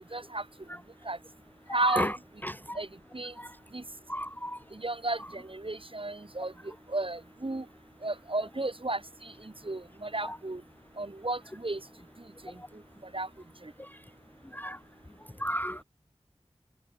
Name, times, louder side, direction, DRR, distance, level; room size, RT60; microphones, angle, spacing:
voice 1, 0.1-0.4 1.1-1.2 1.7-2.2 2.7-2.9 3.1-3.3 3.7-3.8 4.7-6.5 6.9-7.6 8.0-10.6 11.0-11.8 12.4-12.6 13.1-13.3, right 2 dB, 50° right, 4.6 m, -33 dB
voice 2, 2.4-2.8 3.4-3.5 4.1-4.6 10.2-10.3 14.5-14.8 15.4-15.8, equal, 15° left, 0.6 m, -32 dB
wide cardioid pair, 50°, 11 cm